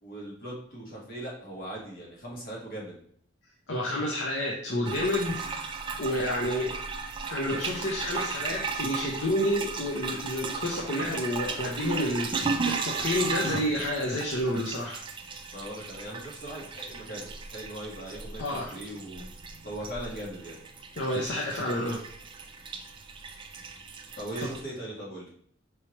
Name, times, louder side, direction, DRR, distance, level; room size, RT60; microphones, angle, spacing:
voice 1, 0.0-3.0 15.5-19.2 19.6-20.7 24.2-25.3, right 1 dB, 50° left, -4 dB, 1.5 m, -39 dB
voice 2, 3.7-6.8 7.3-15.0 18.4-18.6 21.0-22.0, left 1 dB, 65° left, -3 dB, 0.7 m, -30 dB
sound 1, 4.8-24.6, right 4 dB, 25° right, 0.4 m, -36 dB
4.7 x 3.1 x 3.0 m, 0.63 s
head